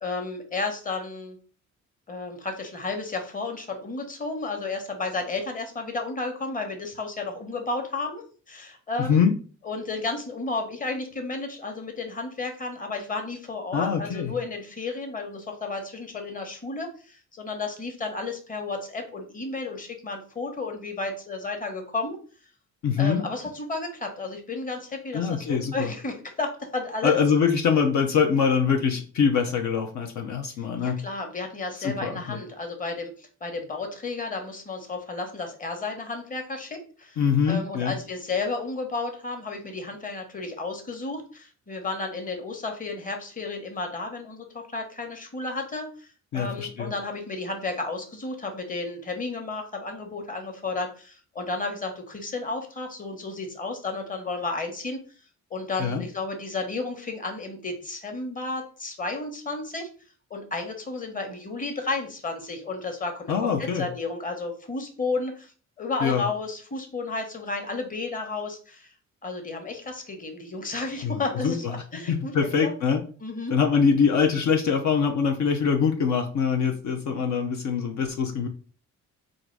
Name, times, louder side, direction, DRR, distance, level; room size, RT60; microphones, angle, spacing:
voice 1, 0.0-1.4 2.1-9.2 9.6-22.2 23.0-27.2 30.6-37.2 37.5-55.0 55.5-59.9 60.3-65.5 65.8-68.9 69.2-72.3 72.6-72.7 73.2-73.6, left 3 dB, 25° left, 4 dB, 1.2 m, -32 dB
voice 2, 9.0-9.4 13.7-14.3 22.8-23.2 25.1-25.9 27.0-31.0 31.8-32.4 37.2-37.9 46.3-46.9 55.8-56.0 63.3-63.9 66.0-66.2 71.0-73.0 73.5-78.5, left 6 dB, 65° left, 2 dB, 0.7 m, -24 dB
3.8 x 2.6 x 4.6 m, 0.39 s
cardioid pair, 90°, 30 cm